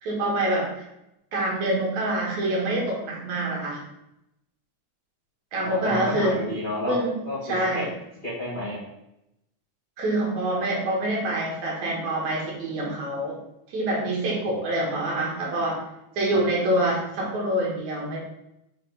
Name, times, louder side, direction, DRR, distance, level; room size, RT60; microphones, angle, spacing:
voice 1, 0.0-0.9 1.3-3.8 5.5-6.3 6.9-7.1 7.4-7.9 10.0-13.4 13.7-15.8 16.2-18.2, right 1 dB, 70° right, -2 dB, 2.8 m, -26 dB
voice 2, 5.6-7.0 7.2-7.4 7.7-7.8 8.2-8.8 14.4-14.7, left 1 dB, 25° left, -8 dB, 1.3 m, -30 dB
6.6 x 3.9 x 4.0 m, 0.85 s
omnidirectional pair, 3.5 m